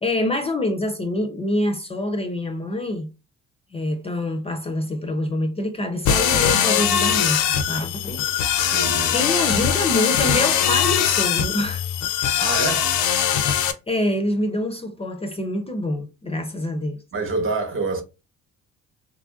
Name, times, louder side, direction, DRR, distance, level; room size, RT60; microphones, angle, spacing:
voice 1, 0.0-3.1 3.7-8.3 9.1-11.8 13.9-17.0, left 1 dB, 20° left, 0.4 m, -26 dB
sound 1, 6.1-13.7, left 9 dB, 80° left, 0.5 m, -21 dB
voice 2, 8.7-9.1 12.4-12.9 17.1-18.0, right 3 dB, 45° right, 0.9 m, -26 dB
3.0 x 2.5 x 2.3 m
cardioid pair, 90°, 30 cm